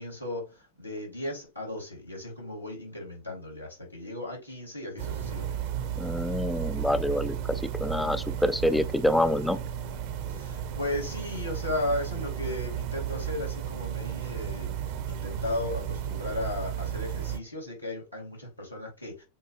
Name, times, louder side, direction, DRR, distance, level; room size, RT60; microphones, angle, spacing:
voice 1, 0.0-5.6 7.9-8.2 10.3-19.2, left 1 dB, 85° left, 2.3 m, -35 dB
sound 1, 5.0-17.4, right 9 dB, 45° right, 0.8 m, -34 dB
voice 2, 6.0-9.6, left 1 dB, 5° left, 0.4 m, -27 dB
7.2 x 2.6 x 2.4 m
figure-of-eight pair, 90°, 0 cm